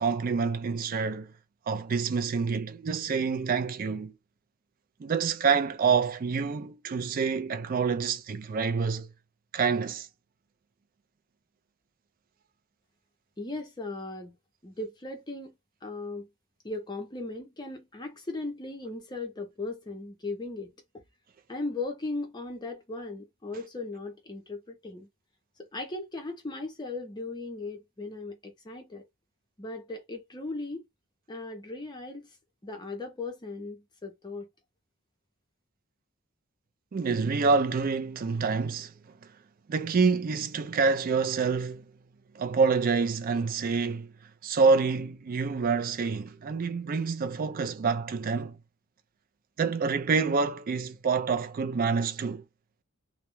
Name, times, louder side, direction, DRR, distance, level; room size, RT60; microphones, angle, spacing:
voice 1, 0.0-1.3 1.7-4.1 5.0-9.1 9.5-10.1 36.9-38.9 39.7-41.8 42.3-44.1 44.4-48.6 49.6-52.4, right 5 dB, 40° right, 0.3 m, -27 dB
voice 2, 13.4-14.4 14.6-15.5 15.8-16.3 16.6-20.7 21.5-25.1 25.6-29.0 29.6-30.9 31.3-32.4 32.6-34.5, left 2 dB, 20° left, 0.6 m, -37 dB
2.2 x 2.0 x 2.9 m
head